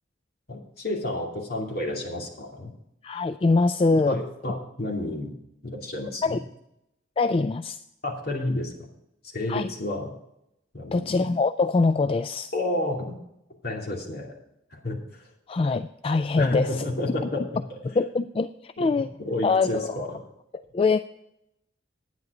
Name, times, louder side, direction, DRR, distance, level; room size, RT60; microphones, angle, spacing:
voice 1, 0.5-2.7 4.1-5.3 5.6-6.4 8.0-8.7 9.2-10.1 10.7-11.2 12.5-13.1 13.6-14.3 14.7-15.3 16.4-17.8 18.8-20.2, left 1 dB, 55° left, -1 dB, 2.7 m, -31 dB
voice 2, 3.0-4.2 6.2-6.4 7.2-7.8 9.5-9.7 10.9-12.5 15.5-16.7 17.9-19.1 19.4-20.0 20.7-21.0, left 3 dB, 30° left, 11 dB, 0.3 m, -23 dB
11.0 x 9.6 x 4.9 m, 0.82 s
head